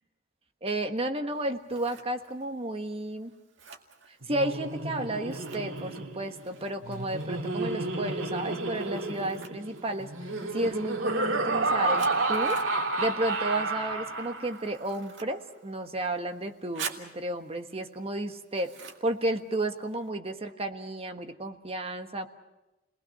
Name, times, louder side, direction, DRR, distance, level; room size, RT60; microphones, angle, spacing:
voice 1, 0.6-3.3 4.3-10.1 10.5-12.6 13.0-18.7 19.0-22.3, right 1 dB, 30° right, 6 dB, 1.4 m, -32 dB
Scissors, 1.3-20.1, right 6 dB, 70° right, 2.1 m, -49 dB
Laughter, 4.2-14.7, right 2 dB, 85° right, 2.0 m, -31 dB
30.0 x 20.0 x 5.9 m, 0.98 s
head